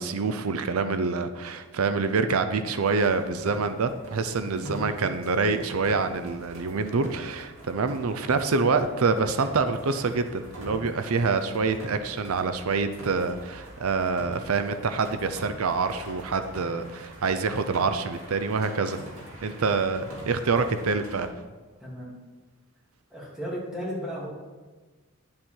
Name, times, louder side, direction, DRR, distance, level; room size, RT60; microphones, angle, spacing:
voice 1, 0.0-19.0 19.4-21.3, right 4 dB, 85° right, 10 dB, 0.6 m, -26 dB
sound 1, 2.8-21.3, right 1 dB, 70° right, 2.7 m, -44 dB
voice 2, 4.5-4.9 21.8-22.1 23.1-24.3, equal, 5° right, -6 dB, 2.6 m, -34 dB
10.5 x 7.4 x 4.5 m, 1.3 s
head